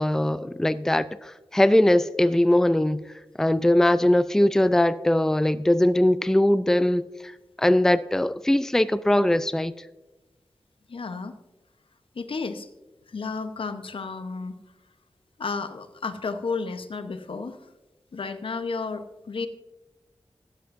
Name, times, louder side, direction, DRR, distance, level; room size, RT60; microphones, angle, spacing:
voice 1, 0.0-3.0 3.4-7.3 7.6-9.7, left 1 dB, 5° left, 0.4 m, -21 dB
voice 2, 10.9-11.3 12.1-12.7 13.1-14.6 15.4-17.6 18.1-19.5, left 4 dB, 75° left, 0.9 m, -32 dB
15.0 x 11.5 x 2.6 m
cardioid pair, 55°, 9 cm